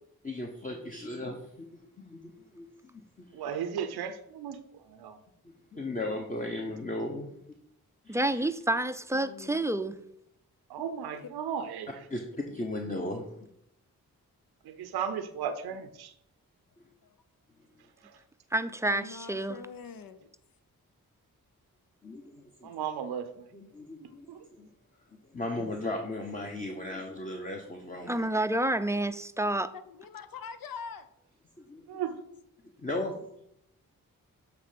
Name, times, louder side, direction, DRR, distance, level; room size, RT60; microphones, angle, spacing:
voice 1, 0.2-3.5 5.7-7.4 8.0-8.5 12.1-13.5 22.0-22.7 23.5-24.7 25.1-28.3 31.6-32.0 32.8-33.4, left 2 dB, 20° left, 1 dB, 1.1 m, -37 dB
voice 2, 3.3-5.2 10.7-11.9 14.6-16.1 18.0-18.2 22.6-23.5 24.0-24.5 31.9-32.2, right 8 dB, 90° right, 11 dB, 0.6 m, -36 dB
voice 3, 8.1-9.9 18.5-19.6 28.1-29.7, right 1 dB, 10° right, 12 dB, 0.5 m, -29 dB
voice 4, 9.1-9.6 11.2-11.3 12.5-13.3 15.7-15.8 16.7-17.2 18.9-20.3 24.0-24.2 29.7-31.1, left 6 dB, 65° left, 11 dB, 0.8 m, -45 dB
8.0 x 3.4 x 5.1 m, 0.76 s
supercardioid pair, 40°, 37 cm